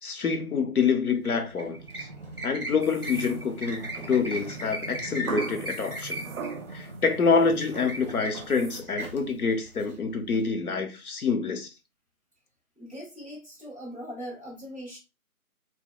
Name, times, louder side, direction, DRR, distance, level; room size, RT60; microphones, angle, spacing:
voice 1, 0.0-2.1 2.4-6.2 6.7-11.7, left 5 dB, 75° left, 0.8 m, -27 dB
sound 1, 1.1-10.4, right 1 dB, 40° right, 0.8 m, -38 dB
sound 2, 2.8-3.9 5.3-7.0 7.4-7.8 8.3-8.8, right 5 dB, 65° right, 0.5 m, -38 dB
voice 2, 12.8-15.0, equal, 10° left, 1.4 m, -40 dB
3.7 x 2.1 x 2.2 m
figure-of-eight pair, 175°, 44 cm